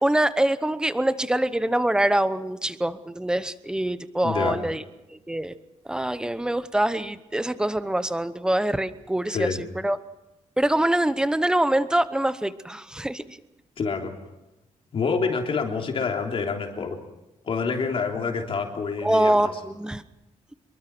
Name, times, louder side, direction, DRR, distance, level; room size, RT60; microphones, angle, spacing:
voice 1, 0.0-4.8 5.1-5.5 5.9-10.0 10.6-13.4 19.0-20.0, right 1 dB, 5° right, 13 dB, 0.9 m, -24 dB
voice 2, 4.2-4.6 9.3-9.6 13.8-14.1 14.9-17.0 17.5-19.5, left 5 dB, 50° left, 2 dB, 3.4 m, -27 dB
26.5 x 23.0 x 6.1 m, 0.99 s
wide cardioid pair, 165°, 12 cm